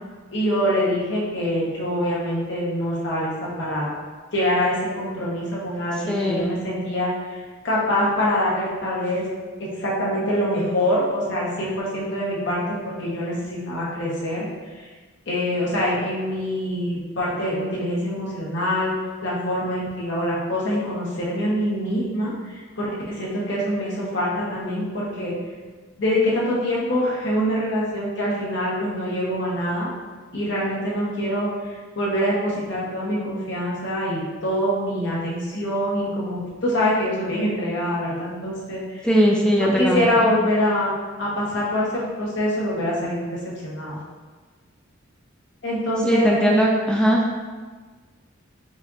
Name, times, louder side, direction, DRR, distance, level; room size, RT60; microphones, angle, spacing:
voice 1, 0.3-3.9 4.3-9.2 9.6-14.4 14.7-14.9 15.3-18.9 19.2-25.3 26.0-29.9 30.3-31.5 31.9-39.1 39.6-40.9 41.2-43.3 43.6-44.0 45.6-46.5, equal, 60° left, -6 dB, 1.2 m, -24 dB
voice 2, 6.1-6.5 39.0-40.3 46.0-47.3, equal, 5° left, -2 dB, 0.4 m, -19 dB
5.1 x 3.3 x 2.7 m, 1.4 s
head